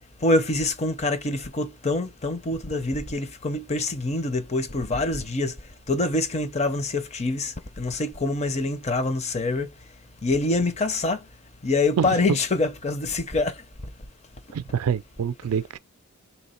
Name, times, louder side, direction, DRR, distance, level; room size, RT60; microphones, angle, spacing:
voice 1, 0.2-5.6 5.9-9.7 10.2-11.2 11.6-13.5, left 2 dB, 30° left, 0.5 m, -25 dB
voice 2, 14.5-15.8, right 7 dB, 85° right, 0.4 m, -26 dB
3.6 x 2.9 x 4.2 m
head